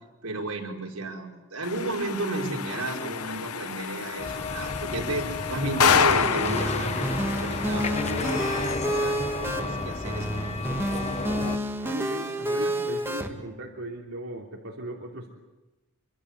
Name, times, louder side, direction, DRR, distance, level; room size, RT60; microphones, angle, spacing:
voice 1, 0.2-10.9 12.6-12.8, right 2 dB, 85° right, 0 dB, 5.3 m, -33 dB
sound 1, 1.6-8.7, left 7 dB, 80° left, 1.0 m, -28 dB
sound 2, 4.2-11.6, left 3 dB, 30° left, 1.2 m, -32 dB
sound 3, 5.9-13.3, right 1 dB, 10° right, 2.0 m, -30 dB
voice 2, 11.8-15.3, right 2 dB, 70° right, -2 dB, 3.2 m, -37 dB
27.0 x 24.5 x 8.3 m, 1.0 s
head